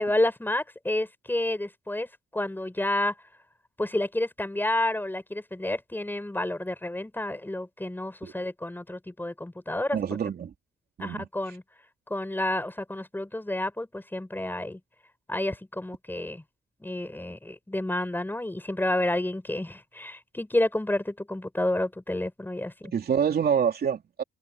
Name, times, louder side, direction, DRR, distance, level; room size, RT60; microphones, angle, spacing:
voice 1, 0.0-3.1 3.8-10.0 11.0-11.6 12.1-14.8 15.3-16.4 16.8-22.9, left 1 dB, 10° left, 7.5 m, -30 dB
voice 2, 9.9-10.5 11.0-11.3 22.9-24.2, right 7 dB, 50° right, 3.2 m, -26 dB
cardioid pair, 90°, 20 cm